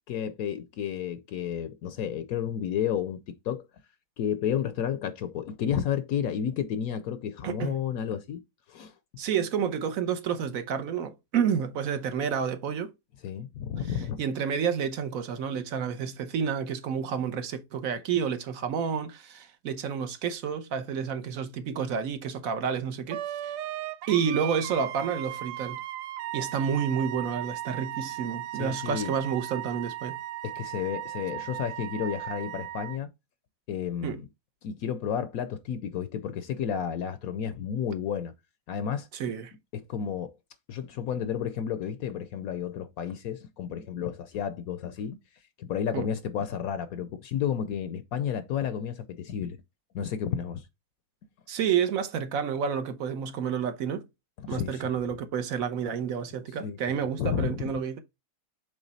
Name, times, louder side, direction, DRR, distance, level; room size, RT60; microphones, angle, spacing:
voice 1, 0.1-3.7 4.2-8.4 8.7-8.9 13.2-14.2 28.5-29.1 30.4-33.1 33.7-34.3 34.6-38.3 38.7-39.1 39.7-40.3 40.7-45.2 45.6-49.6 49.9-50.6 54.4-54.8 56.6-56.8 57.2-57.7, left 8 dB, 70° left, 1.0 m, -31 dB
voice 2, 7.4-7.8 9.2-12.9 14.2-23.5 24.1-25.8 26.3-30.2 34.0-34.2 39.1-39.5 45.9-46.1 51.5-54.1 54.5-58.0, right 7 dB, 65° right, 1.1 m, -30 dB
Wind instrument woodwind instrument, 23.1-33.0, right 13 dB, 90° right, 1.2 m, -37 dB
7.2 x 3.3 x 4.0 m
omnidirectional pair, 1.7 m